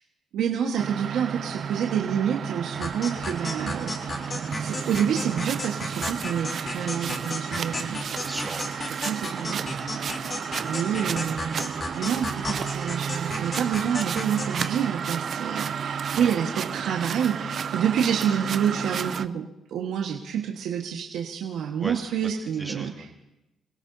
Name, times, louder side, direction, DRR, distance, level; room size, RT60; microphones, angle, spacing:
voice 1, 0.3-4.3 4.6-8.0 9.0-10.1 10.6-22.9, right 8 dB, 80° right, 0 dB, 1.5 m, -28 dB
sound 1, 0.8-19.3, right 7 dB, 55° right, 0.5 m, -32 dB
sound 2, 2.8-14.8, left 2 dB, 35° left, 3.3 m, -34 dB
voice 2, 8.2-8.7 16.1-16.3 21.8-23.3, right 2 dB, 15° right, 2 dB, 2.3 m, -38 dB
28.5 x 17.5 x 2.8 m, 0.92 s
cardioid pair, 90°, 0 cm